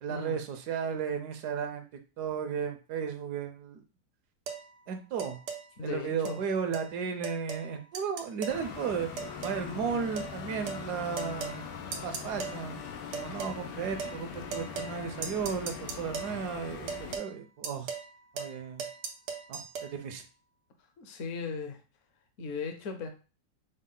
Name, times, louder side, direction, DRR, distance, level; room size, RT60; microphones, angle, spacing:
voice 1, 0.0-3.8 4.9-5.4 5.8-9.1 9.4-11.6 12.0-12.8 13.1-17.9 18.3-18.9 19.5-20.2, right 6 dB, 70° right, 7 dB, 1.2 m, -34 dB
sound 1, 4.5-4.6 5.2-5.6 6.2-6.4 6.7-6.9 7.2-7.7 7.9-8.6 9.2-9.6 10.2-10.3 10.7-10.8 11.2-11.6 11.9-12.6 13.1-13.6 14.0-14.2 14.5-15.0 15.2-16.4 16.9-17.3 17.6-18.1 18.4-18.5 18.8-19.9, right 6 dB, 90° right, 1.4 m, -37 dB
voice 2, 5.8-6.4 21.0-21.8 22.4-23.1, left 4 dB, 55° left, 5 dB, 1.0 m, -37 dB
sound 2, 8.5-17.2, left 7 dB, 90° left, 1.3 m, -41 dB
5.3 x 2.1 x 3.7 m, 0.33 s
omnidirectional pair, 1.8 m